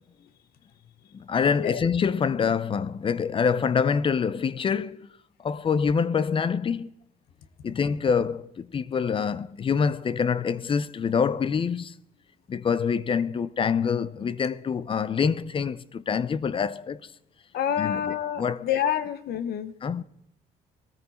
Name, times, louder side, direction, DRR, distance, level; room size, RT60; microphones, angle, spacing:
voice 1, 1.1-5.1 5.4-6.9 7.6-11.9 12.5-17.0 17.8-18.7 19.8-20.0, left 6 dB, 30° left, 0.6 m, -26 dB
voice 2, 17.5-19.7, left 9 dB, 70° left, 1.2 m, -28 dB
19.0 x 14.0 x 4.3 m
cardioid pair, 110°, 17 cm